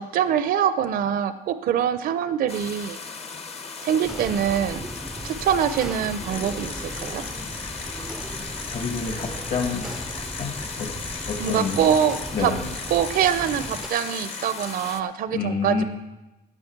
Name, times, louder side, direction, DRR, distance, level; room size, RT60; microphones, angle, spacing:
voice 1, 0.0-3.0 3.8-4.8 5.2-7.2 11.4-12.5 12.9-15.8, right 9 dB, 60° right, 12 dB, 0.6 m, -24 dB
sound 1, 2.5-15.0, left 4 dB, 40° left, 0.9 m, -38 dB
sound 2, 4.0-13.9, right 1 dB, 5° right, 0.4 m, -37 dB
sound 3, 5.0-5.4 5.8-5.9 6.3-12.3 12.6-14.6, left 4 dB, 80° left, 2.6 m, -38 dB
voice 2, 8.7-9.9 10.2-10.5 10.8-10.9 11.3-11.8 12.3-12.7 15.3-15.8, left 4 dB, 55° left, 3 dB, 2.1 m, -28 dB
9.9 x 8.2 x 7.3 m, 1.0 s
cardioid pair, 110°, 17 cm